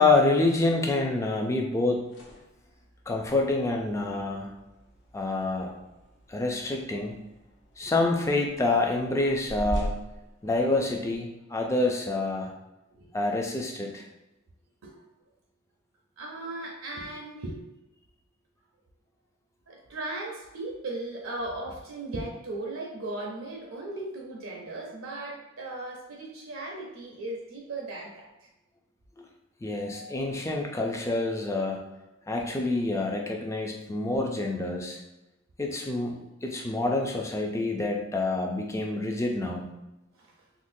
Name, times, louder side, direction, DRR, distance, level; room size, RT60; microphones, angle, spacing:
voice 1, 0.0-2.0 3.1-4.5 5.1-5.7 6.3-7.2 7.8-10.0 10.4-12.5 13.1-14.1 29.2-29.3 29.6-31.9 32.3-35.0 35.6-39.7, left 2 dB, 15° left, 1 dB, 0.3 m, -27 dB
sound 1, 1.9-11.2, equal, 55° left, 0.7 m, -41 dB
voice 2, 16.2-17.6 19.7-28.3 29.9-30.2 40.2-40.3, right 2 dB, 75° right, -1 dB, 0.6 m, -37 dB
3.8 x 2.1 x 2.6 m, 0.96 s
head